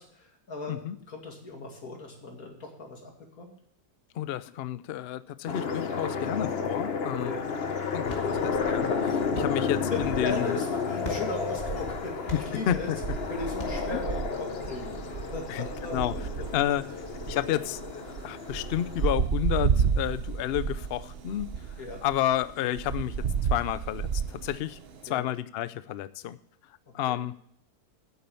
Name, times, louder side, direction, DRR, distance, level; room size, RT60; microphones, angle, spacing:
voice 1, 0.0-3.1 3.4-3.5 7.2-7.4 8.1-8.4 9.9-12.9 13.3-16.2 21.8-22.0 25.0-25.3 27.1-27.2, left 3 dB, 60° left, 2 dB, 2.9 m, -38 dB
voice 2, 4.1-7.3 7.9-10.6 12.3-13.0 13.9-14.0 15.5-16.1 16.5-16.8 17.3-21.5 22.0-23.1 23.5-24.8 25.0-26.4 26.9-27.3, left 11 dB, 85° left, 15 dB, 0.5 m, -31 dB
sound 1, 5.5-19.1, left 5 dB, 45° left, 1.1 m, -32 dB
sound 2, 8.0-14.0, left 1 dB, 25° left, 2.0 m, -45 dB
sound 3, 8.1-25.1, right 6 dB, 50° right, 0.8 m, -33 dB
9.6 x 8.5 x 6.9 m, 0.66 s
omnidirectional pair, 1.7 m